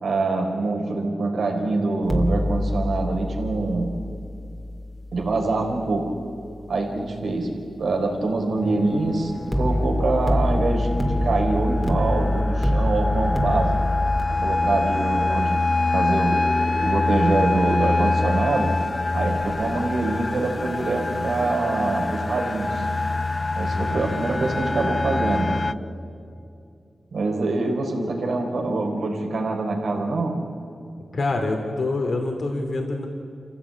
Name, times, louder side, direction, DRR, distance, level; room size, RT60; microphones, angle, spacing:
voice 1, 0.0-4.0 5.1-6.2 6.7-13.8 14.3-18.8 19.1-22.9 23.6-25.6 27.1-30.4, right 2 dB, 75° right, 2 dB, 3.9 m, -25 dB
sound 1, 2.0-7.1 9.5-14.2, left 1 dB, 5° left, 2.4 m, -25 dB
sound 2, 8.6-25.7, left 3 dB, 30° left, 0.7 m, -25 dB
voice 2, 23.7-24.1 31.1-33.1, left 2 dB, 60° left, 3 dB, 2.8 m, -26 dB
27.0 x 16.0 x 8.7 m, 2.5 s
cardioid pair, 60°, 0 cm